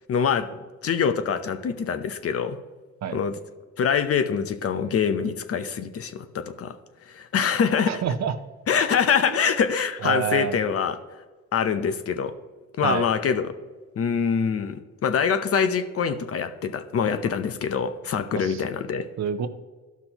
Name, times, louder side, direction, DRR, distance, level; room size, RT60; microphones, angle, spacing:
voice 1, 0.1-0.5 0.8-2.6 3.1-3.4 3.8-6.7 7.1-8.0 8.7-11.0 11.5-12.3 12.7-13.5 14.0-19.1, left 7 dB, 50° left, 10 dB, 0.7 m, -24 dB
voice 2, 7.9-8.3 9.3-9.4 10.0-10.5 12.8-13.1 18.3-18.6 19.2-19.5, right 8 dB, 60° right, 10 dB, 0.8 m, -27 dB
12.5 x 5.9 x 3.0 m, 1.3 s
cardioid pair, 90°, 30 cm